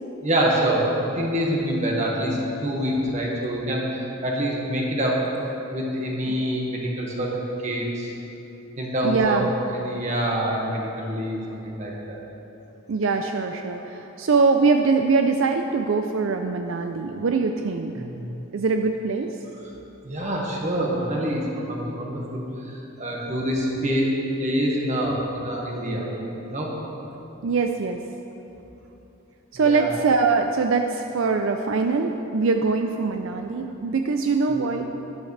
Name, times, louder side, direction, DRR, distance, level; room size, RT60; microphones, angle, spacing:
voice 1, 0.2-5.2 5.7-8.1 8.8-12.2 18.0-18.1 20.0-24.1 24.4-26.1 26.5-26.7 29.5-29.9 34.5-34.7, right 1 dB, 35° right, -3 dB, 1.6 m, -26 dB
voice 2, 9.0-9.5 12.9-17.9 18.5-19.3 27.4-28.0 29.5-34.9, right 4 dB, 75° right, 5 dB, 0.5 m, -22 dB
12.5 x 11.0 x 3.3 m, 3.0 s
head